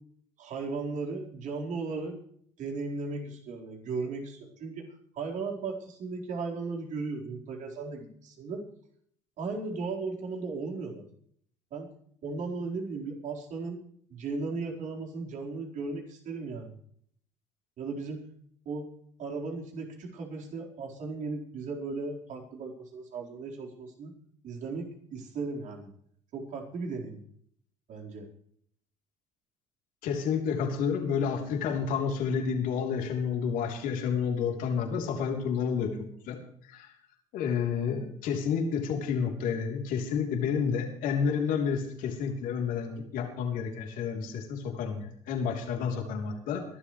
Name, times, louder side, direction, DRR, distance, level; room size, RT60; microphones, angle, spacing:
voice 1, 0.4-2.1 2.6-4.9 5.1-8.6 9.4-11.0 11.7-11.9 12.2-13.8 14.1-16.7 17.8-18.2 18.7-18.9 19.2-24.1 24.4-25.9 26.3-27.2 27.9-28.3, right 4 dB, 55° right, 0 dB, 4.4 m, -36 dB
voice 2, 30.0-36.4 36.6-36.9 37.3-46.6, left 6 dB, 65° left, 3 dB, 3.4 m, -30 dB
23.0 x 12.0 x 3.2 m, 0.62 s
hypercardioid pair, 65°, 15 cm